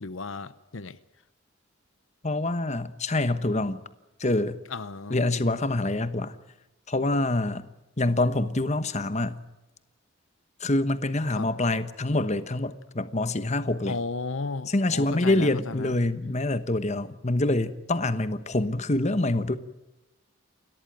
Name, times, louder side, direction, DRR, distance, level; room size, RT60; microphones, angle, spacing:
voice 1, 0.0-1.0 4.7-5.5 11.3-11.5 13.9-15.9, left 3 dB, 65° left, 14 dB, 0.9 m, -34 dB
voice 2, 2.2-3.8 4.2-4.6 5.1-6.4 6.9-7.7 8.0-9.4 10.6-13.9 14.7-19.6, left 2 dB, 35° left, 12 dB, 1.1 m, -26 dB
29.0 x 13.5 x 9.1 m, 1.0 s
head